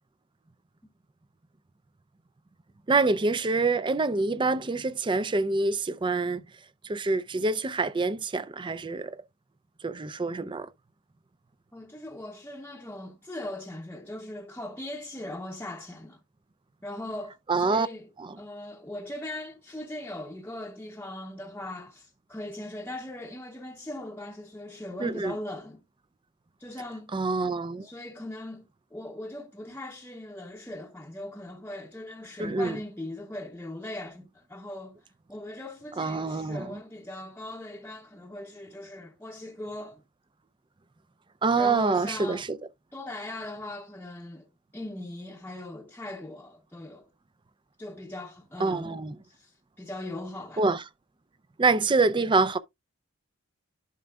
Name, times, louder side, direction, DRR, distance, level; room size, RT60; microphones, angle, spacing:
voice 1, 2.9-6.4 6.8-9.2 9.8-10.7 17.5-17.9 18.2-18.4 25.0-25.3 27.1-27.9 32.4-32.8 36.0-36.8 41.4-42.6 48.6-49.2 50.6-50.8 51.6-52.6, right 3 dB, 25° right, 0.5 m, -26 dB
voice 2, 11.7-16.2 16.8-18.1 18.4-25.8 26.6-27.1 27.8-28.6 28.9-35.0 35.3-40.0 41.6-42.4 42.9-44.5 44.7-47.1 47.8-50.6, left 1 dB, 10° left, 0.8 m, -39 dB
11.0 x 5.2 x 2.3 m
head